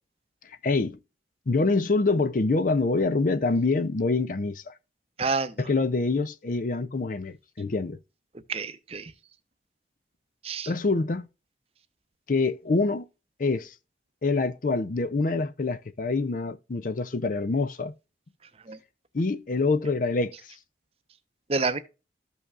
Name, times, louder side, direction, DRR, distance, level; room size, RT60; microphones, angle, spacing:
voice 1, 0.4-1.0 1.5-4.7 5.6-8.0 10.7-11.3 12.3-13.1 13.4-13.7 14.2-17.9 19.1-20.5, left 3 dB, 45° left, 0.5 m, -26 dB
voice 2, 5.2-5.6 8.5-9.1 10.4-10.7 18.7-18.8 21.5-21.8, right 4 dB, 30° right, 0.7 m, -28 dB
13.5 x 5.6 x 2.4 m
head